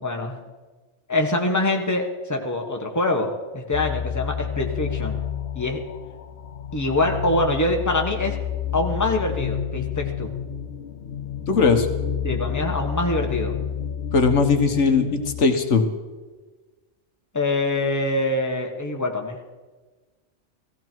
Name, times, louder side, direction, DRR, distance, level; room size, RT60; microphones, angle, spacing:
voice 1, 0.0-0.4 1.1-5.2 5.5-5.8 6.7-8.4 8.7-10.3 12.2-13.5 17.3-19.5, left 2 dB, 15° left, 1 dB, 1.4 m, -24 dB
sound 1, 3.7-15.4, left 8 dB, 65° left, 0.9 m, -30 dB
voice 2, 11.5-11.9 14.1-15.9, left 4 dB, 80° left, 6 dB, 1.5 m, -19 dB
18.0 x 15.0 x 4.6 m, 1.3 s
omnidirectional pair, 1.2 m